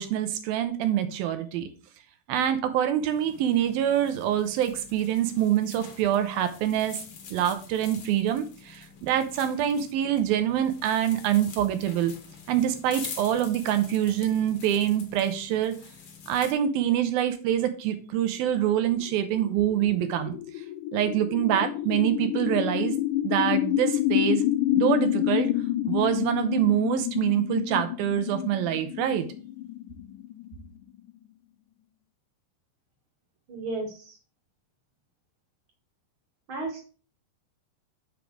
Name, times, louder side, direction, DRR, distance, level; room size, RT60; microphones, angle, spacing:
voice 1, 0.0-1.7 2.3-7.0 7.3-12.1 12.5-15.7 16.3-20.4 20.9-23.0 23.2-24.4 24.8-25.5 25.8-29.3, right 11 dB, 85° right, 9 dB, 2.6 m, -25 dB
sound 1, 3.1-16.5, left 6 dB, 60° left, 1.6 m, -46 dB
sound 2, 19.0-31.1, left 14 dB, 85° left, 1.8 m, -28 dB
voice 2, 33.5-34.2 36.5-36.9, right 3 dB, 45° right, 0 dB, 2.1 m, -34 dB
6.4 x 5.2 x 4.8 m, 0.38 s
omnidirectional pair, 4.2 m